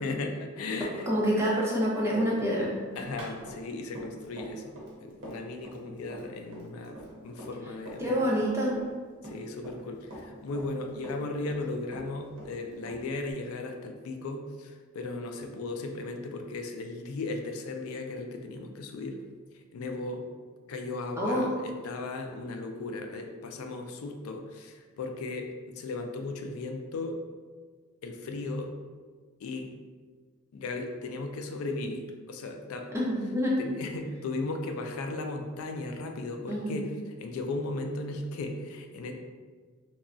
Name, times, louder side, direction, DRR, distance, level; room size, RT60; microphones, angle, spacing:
voice 1, 0.0-1.0 3.0-4.7 5.0-7.0 7.2-8.1 9.2-19.2 19.7-20.3 20.7-25.5 25.7-27.2 28.0-28.7 29.4-29.7 30.5-32.9 33.6-36.9 37.2-39.1, left 2 dB, 80° left, 4 dB, 0.3 m, -36 dB
voice 2, 1.0-2.8 8.0-8.8 21.2-21.6 32.9-33.6 36.5-36.8, equal, 15° right, -5 dB, 0.5 m, -27 dB
Run, 2.6-8.0 8.3-9.9 10.1-11.7 11.9-13.3, right 1 dB, 60° right, 0.7 m, -44 dB
2.9 x 2.2 x 2.5 m, 1.5 s
head